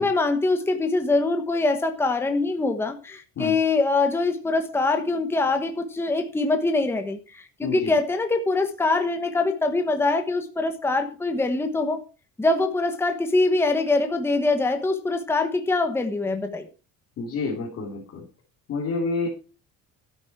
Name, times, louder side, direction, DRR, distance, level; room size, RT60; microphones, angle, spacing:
voice 1, 0.0-12.0 12.4-16.7, left 3 dB, 5° left, 5 dB, 1.1 m, -23 dB
voice 2, 7.6-7.9 17.2-18.3 18.7-19.3, left 3 dB, 45° left, -3 dB, 3.4 m, -29 dB
12.5 x 9.3 x 4.7 m, 0.35 s
cardioid pair, 165°, 35 cm